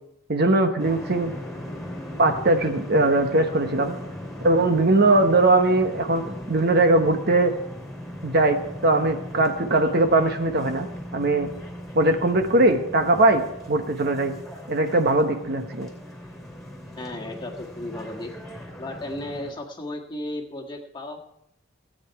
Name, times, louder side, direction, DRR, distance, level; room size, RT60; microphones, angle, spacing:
voice 1, 0.3-1.3 2.2-4.0 4.4-7.5 8.2-11.5 11.9-14.3 14.7-15.9, right 2 dB, 45° right, 6 dB, 1.0 m, -20 dB
sound 1, 0.8-19.5, equal, ahead, 2.6 m, -38 dB
voice 2, 17.0-18.3 18.8-21.2, left 1 dB, 20° left, 0 dB, 1.5 m, -34 dB
16.5 x 8.9 x 4.7 m, 0.81 s
head